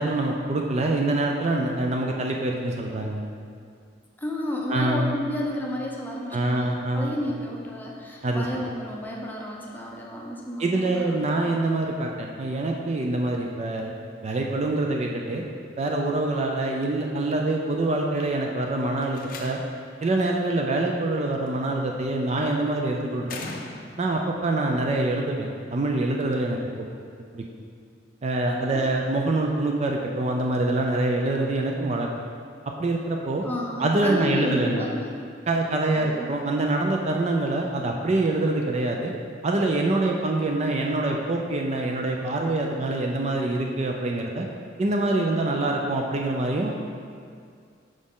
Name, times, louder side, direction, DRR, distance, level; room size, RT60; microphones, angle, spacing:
voice 1, 0.0-3.2 4.7-5.1 6.3-7.1 8.2-8.5 10.6-13.9 14.2-15.5 15.8-19.6 20.0-23.4 24.0-26.9 27.3-27.4 28.2-32.1 32.8-33.4 33.8-34.9 35.5-39.1 39.4-44.5 44.8-46.8, right 2 dB, 35° right, 1 dB, 0.4 m, -25 dB
voice 2, 4.2-11.5 28.7-28.8 33.4-35.2 35.9-36.3, left 1 dB, 10° left, -2 dB, 0.7 m, -32 dB
Slam, 18.9-20.0 21.5-21.9 23.2-24.2, left 3 dB, 50° left, 0.5 m, -39 dB
6.3 x 4.9 x 3.7 m, 2.2 s
head